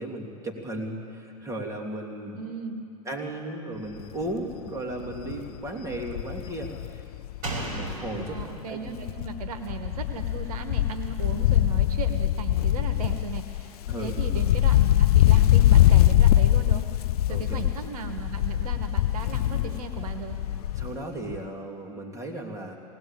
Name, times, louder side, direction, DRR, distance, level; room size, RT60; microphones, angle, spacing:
voice 1, 0.0-2.4 3.0-7.0 7.7-8.3 8.7-8.8 13.9-14.2 17.3-17.6 20.8-22.8, right 1 dB, 15° right, 1 dB, 3.1 m, -35 dB
voice 2, 2.3-2.8 8.1-17.0 17.3-20.4, right 6 dB, 80° right, 6 dB, 1.4 m, -37 dB
Wind, 4.0-4.3 4.7-4.8 5.0-8.6 8.9-21.0 21.3-21.4, left 13 dB, 80° left, 0.4 m, -23 dB
Slam, 7.4-10.9 11.2-11.3, right 2 dB, 45° right, 5.0 m, -38 dB
19.5 x 18.5 x 7.5 m, 2.6 s
hypercardioid pair, 105°, 19 cm